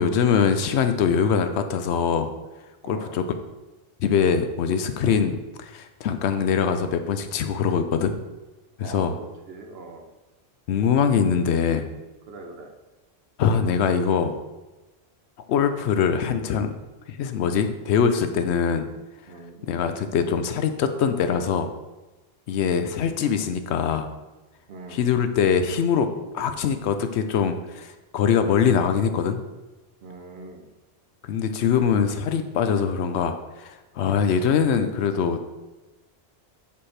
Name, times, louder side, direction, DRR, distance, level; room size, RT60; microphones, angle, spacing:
voice 1, 0.0-2.3 2.9-3.2 4.0-8.2 8.8-9.1 10.7-11.9 13.4-14.3 15.5-16.7 17.1-18.9 19.7-21.7 22.5-24.1 24.9-26.1 26.3-29.4 31.2-35.5, left 7 dB, 90° left, 8 dB, 0.9 m, -23 dB
voice 2, 2.8-3.2 8.8-9.1 9.5-10.1 12.3-12.7 19.3-19.7 24.7-25.1 30.0-30.7, right 3 dB, 65° right, 3 dB, 1.0 m, -41 dB
7.2 x 3.2 x 4.3 m, 1.1 s
omnidirectional pair, 1.1 m